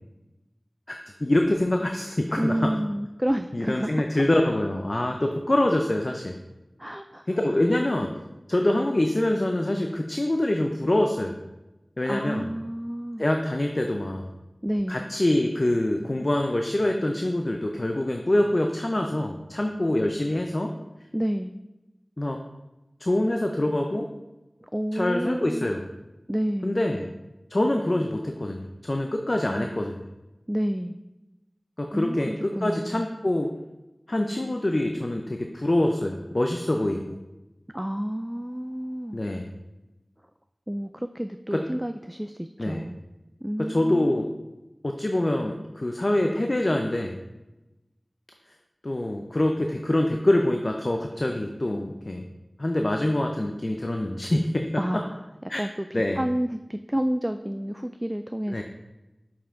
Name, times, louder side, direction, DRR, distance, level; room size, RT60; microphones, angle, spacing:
voice 1, 0.9-2.7 3.5-6.4 7.3-8.1 8.5-11.4 12.0-12.5 13.2-14.3 14.9-20.7 22.2-22.4 23.0-24.1 24.9-25.9 26.6-27.1 27.5-30.0 31.8-33.5 34.1-37.2 39.1-39.5 41.5-41.6 42.6-42.8 43.6-44.3 44.8-47.2 48.8-52.3 52.6-54.7 55.5-55.6 55.9-56.2 58.5-58.6, left 1 dB, 50° left, 3 dB, 0.6 m, -25 dB
voice 2, 2.4-4.2 6.8-7.3 8.5-8.6 12.0-13.2 14.6-15.0 21.1-21.5 24.7-25.7 26.3-26.8 29.4-29.8 30.5-31.0 31.9-33.1 37.7-39.2 40.7-43.0 43.4-44.3 54.8-55.2 55.6-58.6, equal, 10° right, 8 dB, 0.3 m, -30 dB
6.7 x 5.7 x 3.7 m, 1.0 s
wide cardioid pair, 45°, 0 cm